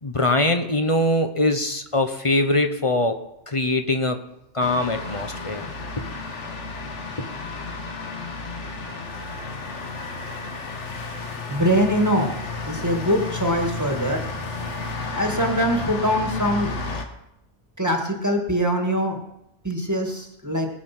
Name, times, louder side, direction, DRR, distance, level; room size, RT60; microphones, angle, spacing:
voice 1, 0.0-3.2 3.5-4.2 4.5-5.6, left 1 dB, 30° left, 7 dB, 0.9 m, -22 dB
sound 1, 4.6-17.0, left 3 dB, 90° left, 1.7 m, -32 dB
voice 2, 11.5-12.3 12.7-14.2 15.2-16.7 17.8-19.2 19.6-20.7, equal, 15° right, 2 dB, 1.8 m, -23 dB
20.0 x 7.2 x 6.0 m, 0.84 s
omnidirectional pair, 1.2 m